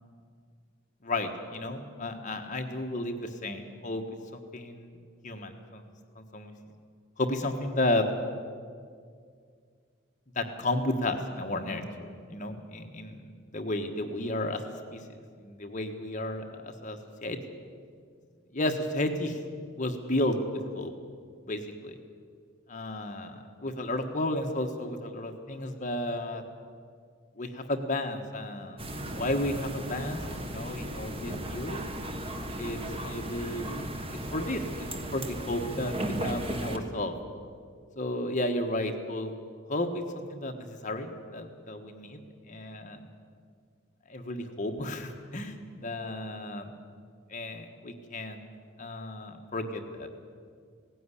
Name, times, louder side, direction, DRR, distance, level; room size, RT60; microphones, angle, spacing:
voice 1, 1.0-4.0 4.3-5.0 5.2-5.8 6.1-6.5 7.2-8.0 10.3-11.8 12.3-13.2 13.5-14.6 14.9-15.0 15.4-17.4 18.5-19.4 19.7-20.9 21.5-22.0 22.7-26.4 27.4-28.8 29.1-31.8 32.6-33.9 34.3-37.1 38.0-39.3 39.7-40.0 40.3-42.2 42.5-43.0 44.1-46.7 47.3-48.5 48.8-50.1, left 1 dB, 40° left, 4 dB, 1.4 m, -33 dB
sound 1, 28.8-36.8, right 1 dB, 30° right, 1.5 m, -36 dB
17.5 x 15.5 x 9.9 m, 2.1 s
head